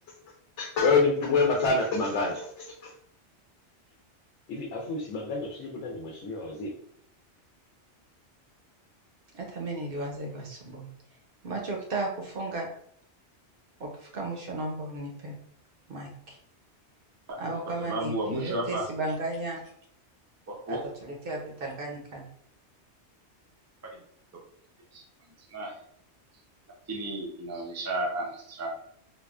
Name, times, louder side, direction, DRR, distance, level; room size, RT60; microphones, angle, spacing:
voice 1, 0.6-2.9 4.5-6.7, left 3 dB, 80° left, -1 dB, 0.9 m, -27 dB
voice 2, 9.3-10.9 11.4-12.7 13.8-15.4 15.9-16.4 17.4-19.6 20.7-22.3, right 2 dB, 60° right, 0 dB, 0.8 m, -34 dB
voice 3, 17.3-18.9 20.5-20.8 23.9-24.0 24.9-25.0 25.5-25.8 26.9-28.7, right 1 dB, 25° right, -1 dB, 0.3 m, -33 dB
3.5 x 2.2 x 2.3 m, 0.65 s
omnidirectional pair, 1.2 m